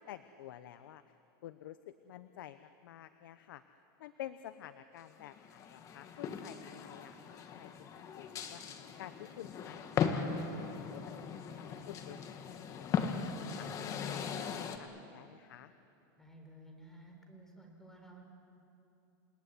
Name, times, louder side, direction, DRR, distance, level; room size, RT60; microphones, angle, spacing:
voice 1, 0.1-1.0 1.4-3.6 4.0-8.6 9.0-12.2 12.5-13.7 14.1-15.7, left 12 dB, 85° left, 11 dB, 0.9 m, -51 dB
sound 1, 5.2-14.8, left 6 dB, 30° left, 1.8 m, -38 dB
voice 2, 16.2-18.2, right 1 dB, 5° left, 2 dB, 4.2 m, -54 dB
29.0 x 18.5 x 9.8 m, 2.8 s
supercardioid pair, 150°, 11 cm